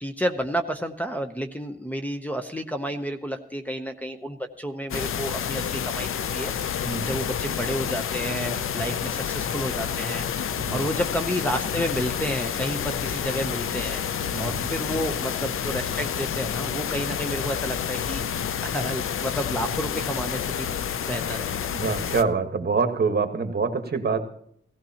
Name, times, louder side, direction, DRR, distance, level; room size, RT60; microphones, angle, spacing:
voice 1, 0.0-10.2 10.7-14.0 14.4-20.7 21.1-21.5, equal, 5° left, 2 dB, 0.8 m, -31 dB
sound 1, 4.9-22.2, left 8 dB, 80° left, 0.6 m, -29 dB
voice 2, 6.8-7.2 10.6-10.9 14.3-14.7 21.7-24.2, right 5 dB, 50° right, 6 dB, 1.5 m, -26 dB
17.0 x 15.5 x 2.9 m, 0.64 s
wide cardioid pair, 110°, 21 cm